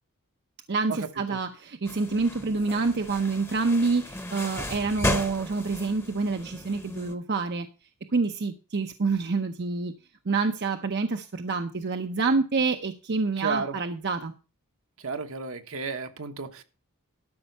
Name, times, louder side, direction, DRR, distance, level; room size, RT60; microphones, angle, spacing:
voice 1, 0.7-7.7 8.1-9.9 10.3-14.3, right 4 dB, 50° right, 6 dB, 0.7 m, -27 dB
sound 1, 1.8-7.1, left 1 dB, 10° left, 1.0 m, -35 dB
voice 2, 13.4-13.8 15.0-16.6, right 4 dB, 70° right, 7 dB, 1.2 m, -33 dB
12.5 x 5.6 x 5.5 m, 0.33 s
head